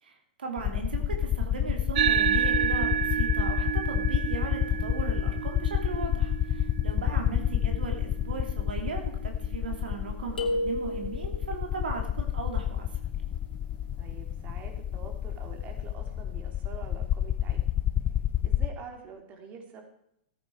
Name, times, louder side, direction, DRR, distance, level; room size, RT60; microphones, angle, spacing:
voice 1, 0.0-12.9, right 4 dB, 85° right, 3 dB, 2.9 m, -37 dB
sound 1, 0.6-18.7, left 11 dB, 30° left, 0.6 m, -29 dB
sound 2, 1.9-10.7, right 9 dB, 65° right, 0.5 m, -31 dB
sound 3, 10.4-11.5, left 1 dB, 90° left, 2.4 m, -30 dB
voice 2, 14.0-17.6 18.4-19.8, right 5 dB, 35° right, 4 dB, 3.1 m, -46 dB
16.5 x 9.3 x 4.7 m, 0.73 s
hypercardioid pair, 115°, 5 cm